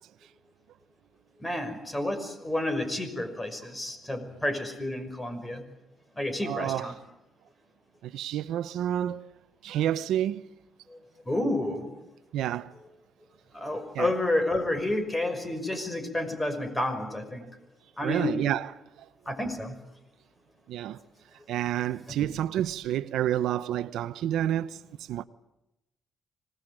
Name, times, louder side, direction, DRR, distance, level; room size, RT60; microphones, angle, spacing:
voice 1, 1.4-5.6 6.2-7.0 10.9-11.0 11.3-11.9 13.5-17.5 18.0-18.5 19.3-19.8 22.1-22.2, left 1 dB, 15° left, 5.8 m, -30 dB
voice 2, 6.4-7.0 8.0-9.2 9.6-10.4 12.3-12.7 13.9-14.1 18.0-18.7 20.7-21.0 21.5-24.8 25.1-25.2, right 11 dB, 85° right, 0.8 m, -29 dB
26.0 x 19.5 x 9.0 m
cardioid pair, 90°, 0 cm